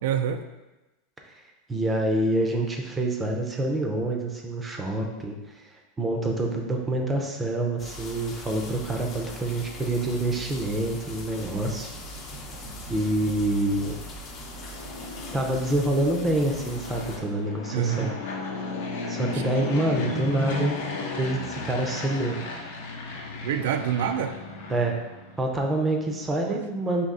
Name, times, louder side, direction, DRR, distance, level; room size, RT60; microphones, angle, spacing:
voice 1, 0.0-0.4 17.7-18.1 19.3-19.4 23.4-24.4 26.4-26.6, right 9 dB, 80° right, 7 dB, 0.3 m, -26 dB
voice 2, 1.7-5.6 6.0-11.9 12.9-14.0 15.3-18.1 19.1-20.8 21.2-22.4 24.7-25.0 25.4-27.1, right 1 dB, 15° right, 2 dB, 0.5 m, -26 dB
sound 1, 7.8-17.2, left 1 dB, 35° left, 0.7 m, -40 dB
Fixed-wing aircraft airplane, 14.4-25.5, left 3 dB, 85° left, 0.8 m, -34 dB
4.1 x 2.9 x 3.7 m, 1.1 s
supercardioid pair, 140°, 0 cm